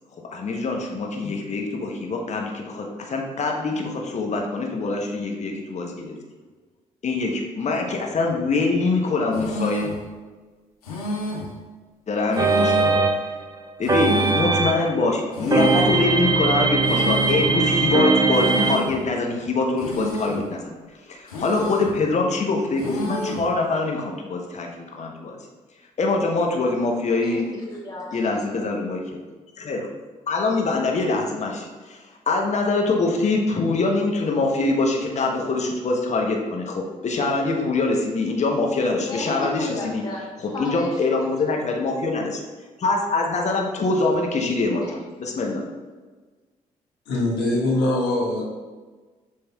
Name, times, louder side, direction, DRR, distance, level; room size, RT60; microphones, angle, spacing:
voice 1, 0.3-6.1 7.0-9.9 12.1-12.8 13.8-20.8 21.0-25.4 26.0-27.5 28.1-29.2 29.6-29.9 30.3-40.0 40.6-42.4 42.8-45.6, left 3 dB, 40° left, 1 dB, 0.8 m, -24 dB
sound 1, 9.3-10.0 10.8-11.5 12.3-13.0 13.8-14.5 15.3-16.0 16.8-17.5 18.3-19.0 19.8-20.5 21.3-22.0 22.8-23.5, left 1 dB, 90° left, 0.5 m, -29 dB
sound 2, 12.4-15.0 15.5-18.8, right 3 dB, 20° right, 0.4 m, -20 dB
voice 2, 27.2-28.4 39.1-41.5 44.8-45.0, left 2 dB, 20° left, -4 dB, 1.2 m, -35 dB
voice 3, 47.1-48.4, left 1 dB, 70° left, -5 dB, 1.2 m, -22 dB
7.0 x 3.3 x 2.3 m, 1.3 s
hypercardioid pair, 45°, 18 cm